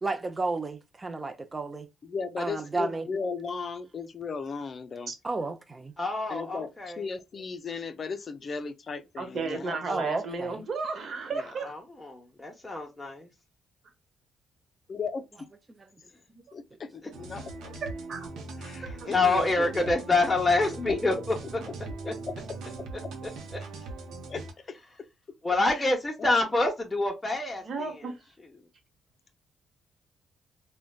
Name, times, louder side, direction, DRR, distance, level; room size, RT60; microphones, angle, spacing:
voice 1, 0.0-1.9 2.4-3.1 5.2-5.9 9.9-10.6 15.7-16.0 16.7-16.8, right 3 dB, 25° right, 0.5 m, -32 dB
voice 2, 2.0-5.1 6.3-10.1 11.3-11.4 14.9-15.3 16.5-17.7 18.6-19.9 21.6-21.7 22.0-23.1 24.3-24.8 25.7-25.9, left 5 dB, 45° left, 0.5 m, -37 dB
voice 3, 6.0-7.1 11.6-13.3 18.9-21.4 22.1-22.2 25.4-28.1, left 2 dB, 15° left, 0.8 m, -27 dB
voice 4, 9.2-11.7 18.1-18.3 19.0-19.1 27.6-28.2, right 4 dB, 55° right, 0.9 m, -33 dB
sound 1, 17.1-24.5, right 3 dB, 80° right, 0.8 m, -40 dB
3.8 x 2.2 x 2.3 m
cardioid pair, 90°, 0 cm